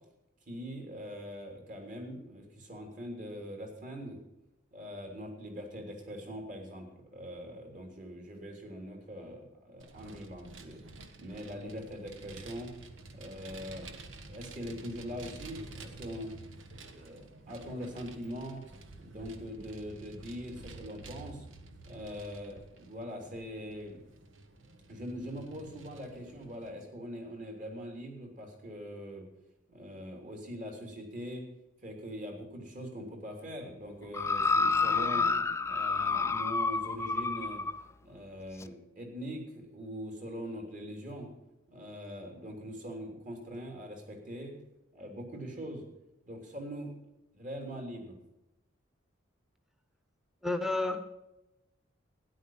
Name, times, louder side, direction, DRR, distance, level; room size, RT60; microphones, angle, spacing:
voice 1, 0.5-4.2 4.7-10.8 11.2-12.7 13.1-13.9 14.3-16.3 16.8-18.6 19.0-21.5 21.8-24.0 24.9-29.3 29.7-31.4 31.8-35.3 35.7-37.6 38.0-41.3 41.7-44.5 44.9-45.8 46.2-47.0 47.3-48.1, equal, 40° right, 2 dB, 3.2 m, -42 dB
Vehicle, 9.8-26.7, right 2 dB, 75° right, 1.3 m, -50 dB
sound 1, 34.1-37.8 38.6-38.7, left 4 dB, 15° left, 0.3 m, -29 dB
voice 2, 50.4-51.0, left 2 dB, ahead, 7 dB, 1.1 m, -30 dB
13.0 x 10.5 x 5.7 m, 0.89 s
head